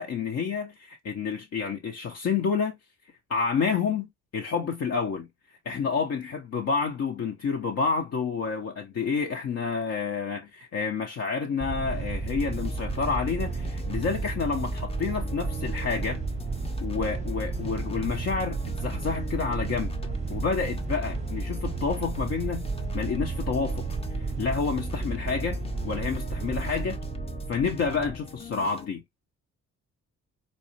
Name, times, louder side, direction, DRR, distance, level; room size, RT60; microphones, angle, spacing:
voice 1, 0.0-2.8 3.3-5.3 5.6-16.2 16.8-19.9 20.3-22.6 22.9-23.9 24.4-27.0 27.5-29.0, left 5 dB, 55° left, 0.8 m, -29 dB
sound 1, 11.6-28.2, right 4 dB, 25° right, 0.6 m, -32 dB
sound 2, 12.2-28.9, left 4 dB, 20° left, 0.6 m, -42 dB
4.1 x 2.4 x 2.8 m
cardioid pair, 90°, 30 cm